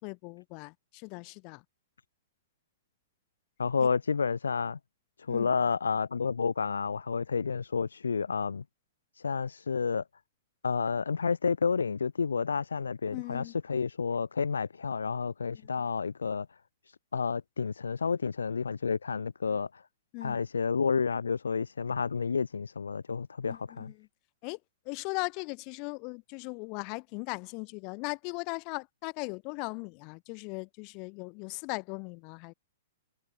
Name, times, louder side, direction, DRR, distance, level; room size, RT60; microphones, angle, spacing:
voice 1, 0.0-1.6 3.8-3.9 5.3-5.5 13.1-13.5 15.5-15.7 20.1-20.4 23.5-24.1 24.4-24.6 24.9-32.5, left 34 dB, 40° left, 4.3 m, -38 dB
voice 2, 3.6-4.8 5.2-8.6 9.2-10.0 10.6-16.5 16.9-19.8 20.2-23.9, left 5 dB, 85° left, 2.2 m, -30 dB
hypercardioid pair, 125°, 0 cm